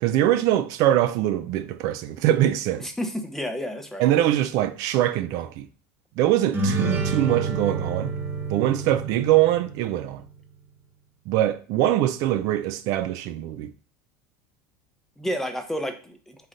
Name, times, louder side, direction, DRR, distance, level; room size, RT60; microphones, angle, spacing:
voice 1, 0.0-2.9 4.0-5.7 6.2-8.1 8.5-10.2 11.3-13.7, right 13 dB, 55° right, 0.4 m, -23 dB
voice 2, 2.8-4.1 15.2-16.4, equal, 5° left, 0.6 m, -30 dB
sound 1, 6.5-10.1, right 3 dB, 25° right, 1.1 m, -28 dB
3.9 x 3.2 x 3.8 m
supercardioid pair, 135°, 7 cm